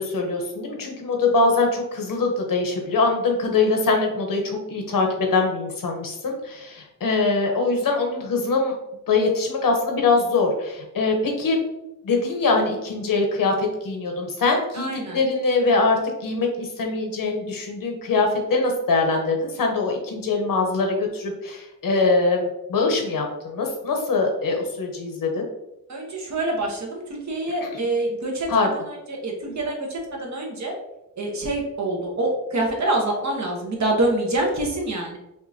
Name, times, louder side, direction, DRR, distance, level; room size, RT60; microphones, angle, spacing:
voice 1, 0.0-8.7 9.1-11.6 12.0-25.5 27.6-27.8 28.5-28.7, left 3 dB, 80° left, 2 dB, 1.0 m, -23 dB
voice 2, 14.7-15.2 25.9-30.7 31.2-35.2, right 2 dB, 55° right, 0 dB, 1.0 m, -26 dB
5.3 x 2.6 x 2.7 m, 0.89 s
wide cardioid pair, 125°, 33 cm